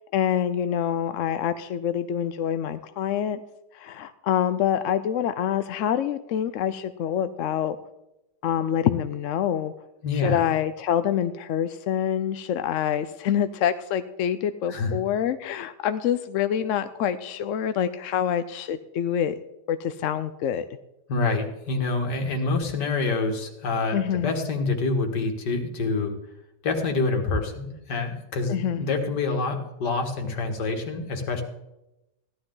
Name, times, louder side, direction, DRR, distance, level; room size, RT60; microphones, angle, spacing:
voice 1, 0.1-3.4 3.7-7.8 8.4-9.7 10.2-19.4 19.7-20.7 23.9-24.3 28.5-28.8, left 9 dB, 65° left, 11 dB, 0.8 m, -26 dB
voice 2, 10.0-10.4 14.7-14.9 21.1-26.2 26.6-31.4, left 3 dB, 85° left, 4 dB, 2.3 m, -26 dB
16.0 x 12.0 x 3.9 m, 0.91 s
omnidirectional pair, 1.8 m